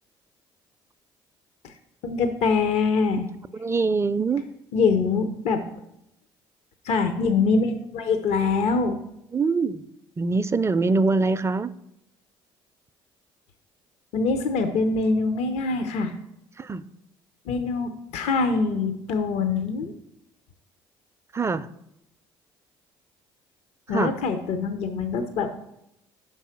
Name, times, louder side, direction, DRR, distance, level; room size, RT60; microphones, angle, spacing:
voice 1, 2.0-3.3 4.7-5.6 6.8-9.0 14.1-16.1 17.5-19.9 23.9-25.5, left 4 dB, 70° left, 0.6 m, -24 dB
voice 2, 3.6-4.4 9.3-9.8 10.2-11.7 16.6-16.8 21.3-21.7 23.9-24.1, right 4 dB, 25° right, 0.4 m, -23 dB
5.7 x 4.7 x 5.7 m
supercardioid pair, 65°, 11 cm